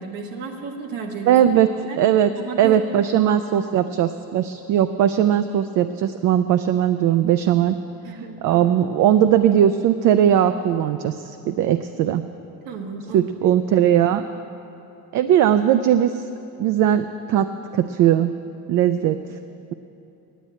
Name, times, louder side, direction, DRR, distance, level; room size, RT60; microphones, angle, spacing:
voice 1, 0.0-1.4 1.9-2.0 2.4-2.8 3.1-3.4 8.0-8.6 12.6-13.6, right 5 dB, 90° right, 2 dB, 1.6 m, -33 dB
voice 2, 1.3-1.7 2.0-2.3 2.6-7.8 8.4-12.2 13.1-14.2 15.1-16.2 16.6-18.3 18.7-19.2, right 10 dB, 65° right, 10 dB, 0.5 m, -19 dB
10.0 x 8.5 x 9.1 m, 2.9 s
cardioid pair, 130°, 34 cm